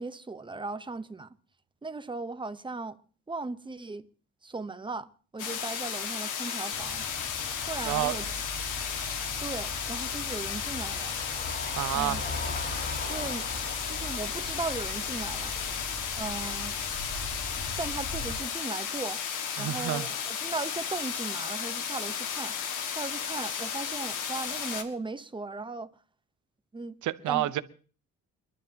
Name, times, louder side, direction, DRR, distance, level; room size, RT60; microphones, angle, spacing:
voice 1, 0.0-1.3 1.8-3.0 3.3-4.0 4.4-7.0 7.7-8.3 9.4-11.1 11.9-12.2 13.1-13.5 13.9-15.5 16.2-16.7 17.8-19.2 19.6-22.5 22.9-25.9 26.7-27.0 27.3-27.5, right 3 dB, 15° right, 1.0 m, -37 dB
sound 1, 5.4-24.8, left 7 dB, 85° left, 2.0 m, -34 dB
sound 2, 6.7-18.4, left 1 dB, 35° left, 7.9 m, -40 dB
voice 2, 7.8-8.2 11.8-12.3 19.6-20.1 27.0-27.6, right 14 dB, 75° right, 1.0 m, -29 dB
29.5 x 11.5 x 2.9 m
cardioid pair, 90°, 30 cm